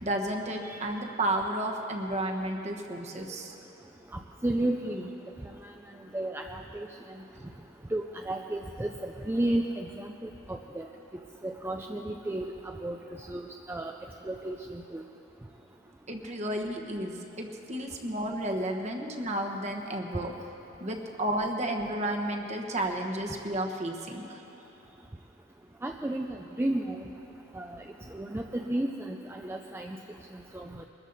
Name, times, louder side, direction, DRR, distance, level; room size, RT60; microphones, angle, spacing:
voice 1, 0.0-3.5 7.4-7.5 16.1-20.3 20.8-24.4, right 1 dB, 35° right, 2 dB, 1.3 m, -32 dB
voice 2, 4.4-5.1 5.6-5.7 6.1-7.2 7.9-10.9 11.4-13.9 14.3-15.0 25.8-27.0 27.5-27.8 28.1-30.0 30.5-30.8, right 1 dB, 10° right, 3 dB, 0.4 m, -33 dB
22.0 x 13.5 x 4.1 m, 3.0 s
head